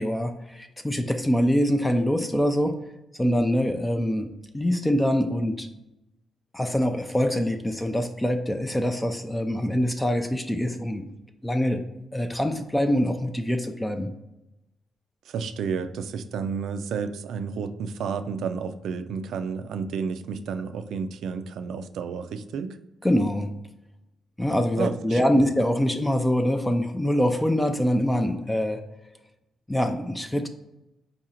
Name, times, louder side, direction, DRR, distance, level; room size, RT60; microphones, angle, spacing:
voice 1, 0.0-2.8 3.2-5.7 6.5-11.1 11.4-11.8 12.1-14.1 23.0-23.5 24.4-28.8 29.7-30.5, equal, 10° left, 7 dB, 0.3 m, -24 dB
voice 2, 15.3-22.8 24.8-25.4, right 6 dB, 80° right, 9 dB, 0.3 m, -31 dB
4.7 x 2.5 x 4.2 m, 0.93 s
cardioid pair, 115°, 0 cm